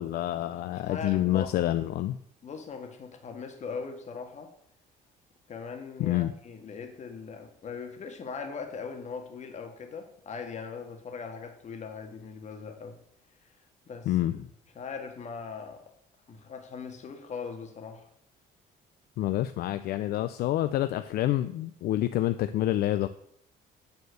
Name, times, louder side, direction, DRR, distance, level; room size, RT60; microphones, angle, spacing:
voice 1, 0.0-2.2 6.0-6.3 14.1-14.5 19.2-23.1, left 14 dB, 65° left, 11 dB, 0.5 m, -28 dB
voice 2, 0.7-1.5 2.4-4.5 5.5-13.0 13.4-13.5 13.9-14.1 14.8-15.8 16.3-18.1, left 5 dB, 45° left, 4 dB, 1.7 m, -40 dB
9.5 x 4.5 x 6.4 m, 0.69 s
cardioid pair, 110°, 17 cm